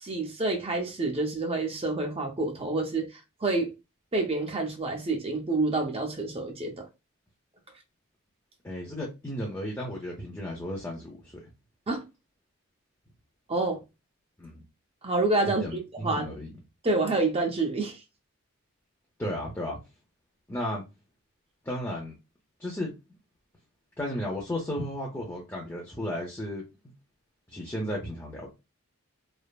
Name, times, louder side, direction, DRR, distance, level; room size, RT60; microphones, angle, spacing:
voice 1, 0.0-3.7 4.1-6.8 11.9-12.0 13.5-13.8 15.0-16.3 16.8-18.0, right 2 dB, 25° right, 0.6 m, -28 dB
voice 2, 8.6-11.5 14.4-14.6 15.5-16.5 19.2-19.8 20.5-20.8 21.6-22.2 22.6-22.9 24.0-26.6 27.5-28.5, left 1 dB, 15° left, 0.6 m, -34 dB
3.3 x 2.0 x 2.3 m
head